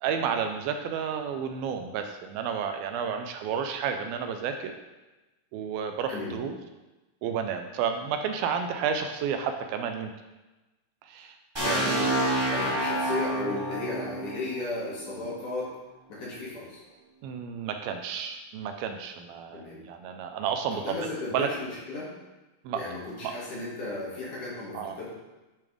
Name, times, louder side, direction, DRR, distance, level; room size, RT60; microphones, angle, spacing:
voice 1, 0.0-4.7 5.5-6.6 7.2-10.1 11.0-12.0 17.2-21.0 21.3-21.5 22.6-23.0 23.2-23.3 24.7-25.0, right 7 dB, 80° right, 6 dB, 2.4 m, -31 dB
sound 1, 11.5-15.4, right 1 dB, 10° right, 1.6 m, -29 dB
voice 2, 11.6-15.7 16.1-16.8 19.5-19.8 20.7-22.1 22.7-25.1, left 2 dB, 55° left, -7 dB, 3.4 m, -34 dB
10.0 x 6.7 x 3.5 m, 1.1 s
omnidirectional pair, 4.3 m